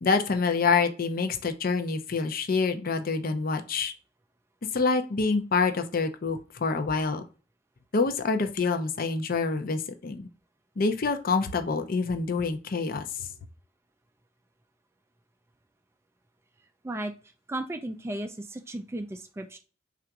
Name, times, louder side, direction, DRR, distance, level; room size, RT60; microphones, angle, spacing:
voice 1, 0.0-3.9 4.7-7.2 7.9-10.3 10.8-13.3, left 4 dB, 45° left, 8 dB, 0.5 m, -26 dB
voice 2, 17.5-19.6, right 1 dB, 15° right, 6 dB, 0.3 m, -35 dB
3.8 x 2.4 x 4.5 m, 0.35 s
head